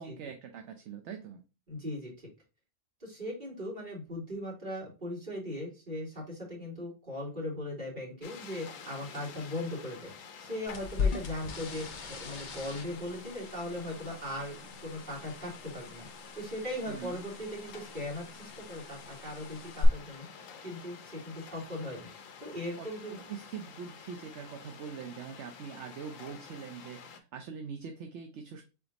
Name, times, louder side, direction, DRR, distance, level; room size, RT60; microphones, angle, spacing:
voice 1, 0.0-1.4 16.9-17.2 22.8-28.6, right 6 dB, 65° right, 5 dB, 0.9 m, -43 dB
voice 2, 1.7-2.3 3.0-10.1 10.4-14.6 14.8-16.1 16.3-20.2 20.6-22.1 22.4-23.1, left 1 dB, 40° right, -4 dB, 2.4 m, -39 dB
sound 1, 8.2-27.2, left 6 dB, 80° left, 1.1 m, -50 dB
sound 2, 10.7-19.8, left 6 dB, 45° left, 0.7 m, -40 dB
3.6 x 3.5 x 3.9 m, 0.31 s
omnidirectional pair, 1.4 m